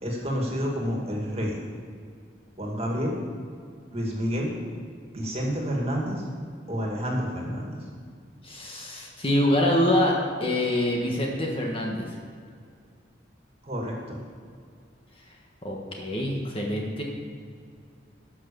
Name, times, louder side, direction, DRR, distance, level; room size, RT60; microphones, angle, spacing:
voice 1, 0.0-1.5 2.6-3.2 3.9-4.5 5.1-6.2 6.7-7.6 13.6-14.2, equal, 35° right, -2 dB, 2.2 m, -29 dB
voice 2, 8.4-12.1 15.6-17.0, left 1 dB, 30° left, -1 dB, 1.4 m, -25 dB
12.0 x 6.2 x 6.9 m, 2.2 s
head